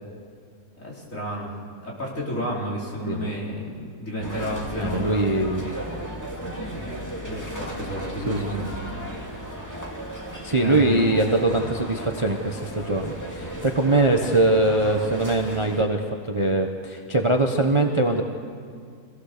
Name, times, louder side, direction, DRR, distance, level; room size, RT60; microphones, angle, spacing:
voice 1, 0.8-1.5 1.8-5.2 6.6-8.7 10.1-10.2 10.6-11.1, equal, 50° left, -4 dB, 4.4 m, -32 dB
sound 1, 4.2-15.8, right 1 dB, 10° left, 2.3 m, -35 dB
voice 2, 4.8-5.7 8.3-8.5 10.4-18.2, right 2 dB, 20° right, 3 dB, 0.9 m, -22 dB
25.5 x 17.0 x 6.7 m, 2.3 s
omnidirectional pair, 1.7 m